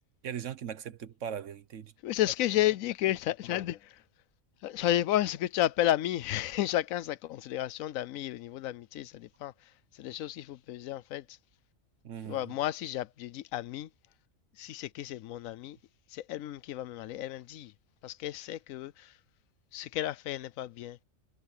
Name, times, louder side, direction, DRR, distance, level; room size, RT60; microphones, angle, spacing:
voice 1, 0.2-1.9 12.0-12.5, right 8 dB, 65° right, 1.3 m, -39 dB
voice 2, 2.0-4.0 4.6-11.4 12.3-13.9 14.6-15.8 16.1-17.7 18.0-19.2 19.7-21.0, left 13 dB, 90° left, 1.0 m, -32 dB
omnidirectional pair, 1.4 m